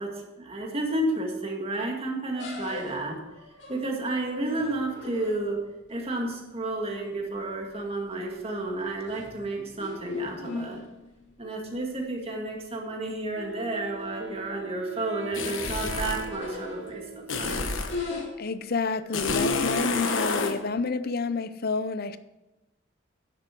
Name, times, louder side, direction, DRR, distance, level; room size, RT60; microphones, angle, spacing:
voice 1, 0.0-3.2 3.7-5.6 5.9-10.8 11.4-17.7, right 2 dB, 30° right, 2.1 m, -31 dB
sound 1, 2.4-5.7 7.3-7.6 8.0-8.4 8.8-11.3 11.8-11.9 12.1-12.2 13.1-13.2 13.5-13.6 14.0-14.4 15.0-17.2 17.8-18.2, left 3 dB, 70° left, 2.4 m, -39 dB
Wind instrument woodwind instrument, 13.3-18.1, right 3 dB, 70° right, 0.8 m, -42 dB
sound 2, 15.3-16.3 17.3-18.0 19.1-20.6, left 3 dB, 90° left, 1.2 m, -28 dB
voice 2, 18.4-22.2, left 4 dB, 50° left, 0.6 m, -29 dB
10.5 x 8.0 x 6.0 m
head